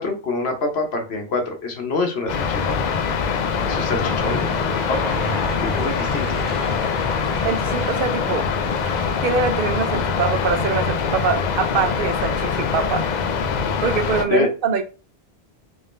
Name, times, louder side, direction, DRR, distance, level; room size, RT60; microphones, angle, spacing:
voice 1, 0.0-2.7 3.6-5.1 5.6-6.3 14.3-14.5, left 3 dB, 75° left, 3 dB, 1.2 m, -26 dB
sound 1, 2.3-14.2, left 6 dB, 55° left, 0.5 m, -23 dB
Aircraft / Engine, 3.3-11.3, equal, 30° left, 1.9 m, -34 dB
voice 2, 7.4-8.4 9.2-13.0 13.8-14.8, right 5 dB, 60° right, 6 dB, 0.9 m, -23 dB
3.6 x 3.6 x 2.5 m, 0.33 s
omnidirectional pair, 1.1 m